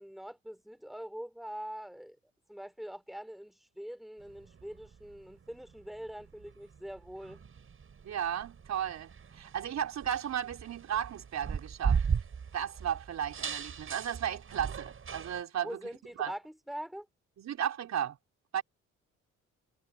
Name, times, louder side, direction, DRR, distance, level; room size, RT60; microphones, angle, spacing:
voice 1, 0.0-2.2 2.5-7.4 15.6-17.1, equal, ahead, 2.7 m, -43 dB
sound 1, 4.2-15.4, right 6 dB, 45° right, 6.1 m, -38 dB
voice 2, 8.0-12.0 12.5-15.8 16.2-16.3 17.4-18.2 18.5-18.6, right 9 dB, 65° right, 3.7 m, -34 dB
cardioid pair, 90°, 30 cm